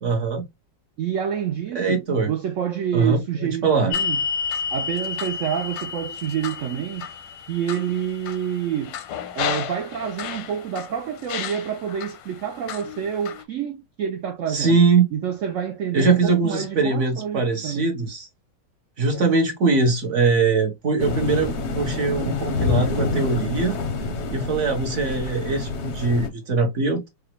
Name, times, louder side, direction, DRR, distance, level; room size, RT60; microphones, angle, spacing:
voice 1, 0.0-0.4 1.7-2.3 2.9-3.9 14.5-15.1 15.9-18.3 19.0-23.7 24.3-27.1, right 4 dB, 50° right, 1.0 m, -22 dB
voice 2, 1.0-4.2 4.7-7.1 7.5-9.0 9.3-14.8 15.1-17.9, right 9 dB, 85° right, 0.6 m, -28 dB
sound 1, 3.9-10.9 11.3-12.1 12.7-13.4, left 6 dB, 85° left, 1.4 m, -30 dB
sound 2, 21.0-26.3, left 3 dB, 60° left, 0.7 m, -27 dB
5.0 x 2.2 x 2.9 m
omnidirectional pair, 1.9 m